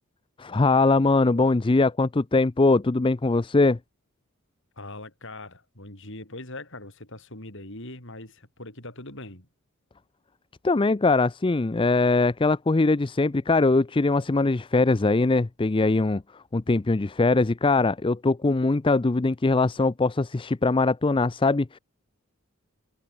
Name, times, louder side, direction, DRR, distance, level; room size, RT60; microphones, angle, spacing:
voice 1, 0.4-3.8 10.6-16.2 16.5-21.8, left 3 dB, 25° left, 0.5 m, -22 dB
voice 2, 4.8-9.5, left 2 dB, 60° left, 7.8 m, -41 dB
head